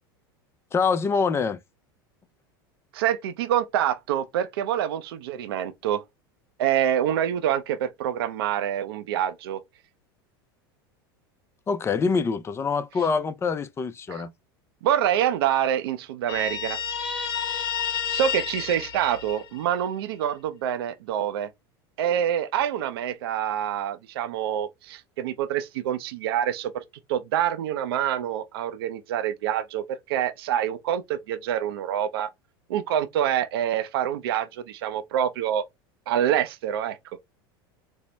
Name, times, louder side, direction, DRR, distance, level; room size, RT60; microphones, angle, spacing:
voice 1, 0.7-1.6 11.7-14.3, left 5 dB, 20° left, 0.5 m, -25 dB
voice 2, 2.9-6.0 6.6-9.6 14.1-14.2 14.8-16.8 18.1-21.5 22.0-26.8 27.1-32.3 32.7-35.6 36.1-37.0, right 10 dB, 80° right, 0.5 m, -26 dB
Guitar, 16.3-19.9, left 7 dB, 80° left, 1.0 m, -30 dB
4.3 x 2.0 x 3.3 m
hypercardioid pair, 100°, 13 cm